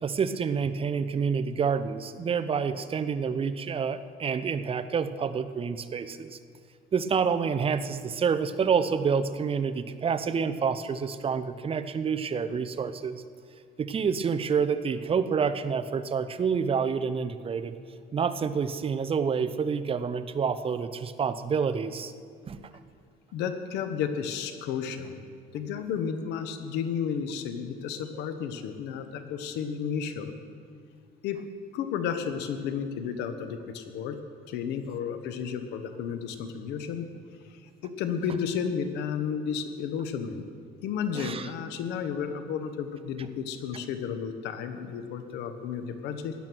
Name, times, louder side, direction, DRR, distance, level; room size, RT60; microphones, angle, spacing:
voice 1, 0.0-6.4 6.9-13.2 13.8-17.7 18.1-22.1 22.5-22.6 41.1-41.5, right 6 dB, 35° right, 11 dB, 0.8 m, -28 dB
voice 2, 23.3-25.3 25.5-30.3 31.2-31.4 31.7-34.2 34.5-37.1 37.5-40.4 40.8-46.3, left 7 dB, 90° left, 9 dB, 1.2 m, -32 dB
16.5 x 10.5 x 6.2 m, 2.2 s
cardioid pair, 110°, 17 cm